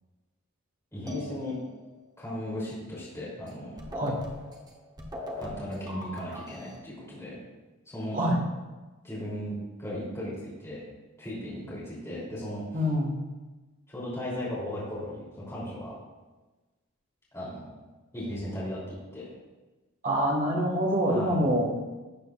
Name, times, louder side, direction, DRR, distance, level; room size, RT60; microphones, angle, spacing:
voice 1, 0.9-1.6 2.2-3.8 5.4-7.4 7.8-8.2 9.0-10.8 11.2-12.6 13.9-15.9 17.3-17.7 18.1-19.3 21.1-21.4, left 1 dB, 15° left, -9 dB, 3.1 m, -36 dB
sound 1, 1.1-1.9 3.5-3.6 3.8-6.8, left 1 dB, 20° right, 1.0 m, -40 dB
voice 2, 12.7-13.1 20.0-21.8, equal, 40° right, -1 dB, 1.7 m, -26 dB
12.0 x 7.9 x 2.5 m, 1.2 s
head